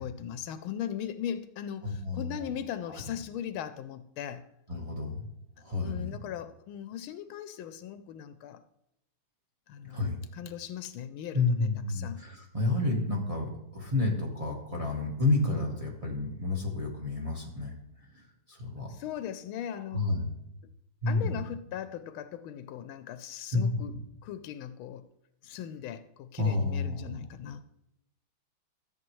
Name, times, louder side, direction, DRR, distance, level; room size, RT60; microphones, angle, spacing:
voice 1, 0.0-4.4 5.8-8.6 9.7-10.0 10.3-12.2 18.9-20.1 21.1-25.0 25.4-27.6, left 9 dB, 80° left, 12 dB, 1.4 m, -39 dB
voice 2, 1.8-2.5 2.9-3.0 4.7-5.2 5.6-6.2 9.9-10.2 11.3-17.7 18.1-18.2 18.5-18.9 19.9-20.3 21.0-21.4 23.5-23.6 26.4-27.2, left 3 dB, 20° right, 0 dB, 1.3 m, -30 dB
13.5 x 7.6 x 3.1 m, 0.82 s
omnidirectional pair, 2.3 m